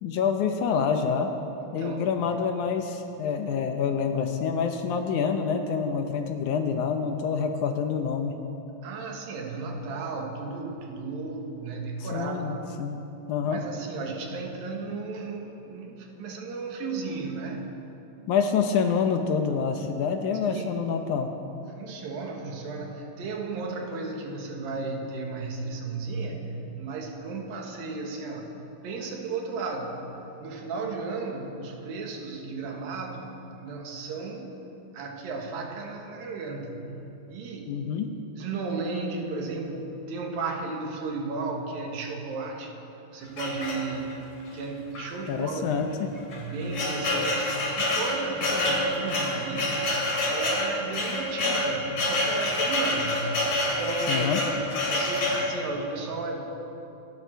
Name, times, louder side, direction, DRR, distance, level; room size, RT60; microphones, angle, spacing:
voice 1, 0.0-1.3 1.7-8.4 12.0-13.0 13.3-13.6 18.3-21.3 37.7-38.1 45.3-46.1 54.1-54.4, left 6 dB, 70° left, 5 dB, 2.1 m, -27 dB
voice 2, 1.6-2.1 8.8-12.6 13.4-17.7 20.4-20.9 21.7-30.1 30.4-34.6 34.9-36.9 37.3-37.9 38.3-42.8 43.1-46.0 46.3-54.3 54.9-56.5, right 3 dB, 85° right, 2 dB, 3.3 m, -34 dB
sound 1, 43.4-44.2 44.9-45.1 45.4-45.5 46.2-55.5, left 1 dB, 50° left, 3.9 m, -27 dB
27.0 x 11.0 x 4.6 m, 3.0 s
omnidirectional pair, 4.0 m